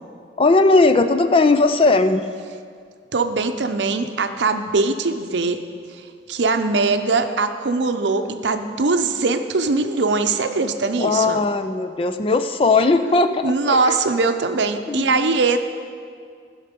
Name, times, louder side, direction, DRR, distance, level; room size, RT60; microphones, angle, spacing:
voice 1, 0.4-2.3 11.0-14.0 14.9-15.3, left 3 dB, 30° left, 9 dB, 0.4 m, -18 dB
voice 2, 3.1-5.6 6.3-11.5 13.4-15.6, right 3 dB, 80° right, 8 dB, 0.6 m, -21 dB
15.0 x 5.6 x 5.2 m, 2.1 s
head